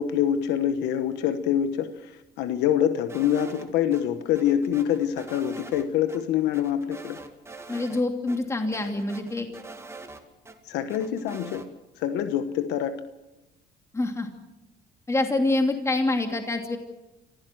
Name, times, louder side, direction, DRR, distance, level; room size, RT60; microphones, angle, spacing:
voice 1, 0.0-7.2 10.7-11.7 12.0-12.9, left 10 dB, 90° left, 10 dB, 1.3 m, -25 dB
sound 1, 3.1-4.0 4.4-5.8 6.1-6.2 6.5-8.0 8.3-8.4 8.7-10.6 10.9-11.7, right 3 dB, 15° right, 2.5 m, -43 dB
voice 2, 7.7-9.5 13.9-14.3 15.1-16.8, left 2 dB, 15° left, 4 dB, 2.7 m, -26 dB
25.5 x 16.0 x 7.7 m, 1.0 s
cardioid pair, 110°, 17 cm